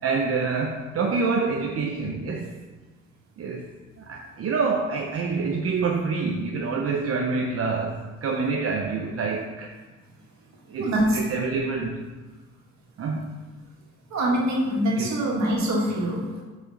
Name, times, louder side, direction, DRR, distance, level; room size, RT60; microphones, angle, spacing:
voice 1, 0.0-2.6 3.4-3.7 4.0-9.7 10.7-12.0 13.0-13.4 15.0-15.2, right 4 dB, 50° right, 1 dB, 0.7 m, -27 dB
voice 2, 10.8-11.2 14.1-16.4, right 1 dB, 65° right, -2 dB, 1.9 m, -24 dB
6.7 x 5.0 x 3.9 m, 1.3 s
cardioid pair, 90°, 30 cm